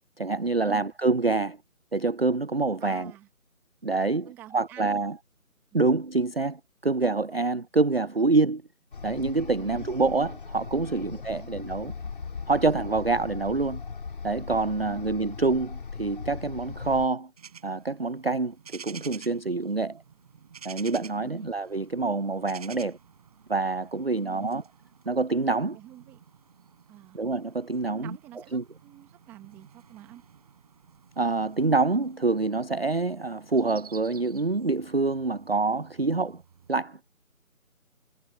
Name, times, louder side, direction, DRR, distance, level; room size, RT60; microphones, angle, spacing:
voice 1, 0.2-1.6 1.9-3.1 3.8-4.3 4.5-5.2 5.7-8.6 9.0-11.9 12.5-13.8 14.2-17.3 17.6-20.0 20.6-23.0 23.5-24.6 25.1-25.8 27.1-28.2 28.5-28.6 31.2-36.4 36.7-37.2, right 3 dB, 45° right, 0.5 m, -26 dB
voice 2, 2.8-3.3 4.2-5.1 5.7-5.9 9.6-10.0 10.9-11.5 14.8-15.1 21.1-21.5 24.2-24.6 25.7-26.2 26.9-27.2 27.8-30.2, right 14 dB, 5° right, 2.3 m, -48 dB
sound 1, 8.9-17.1, left 5 dB, 35° left, 5.0 m, -39 dB
sound 2, 17.4-36.7, right 7 dB, 25° right, 7.9 m, -51 dB
figure-of-eight pair, 165°, 43 cm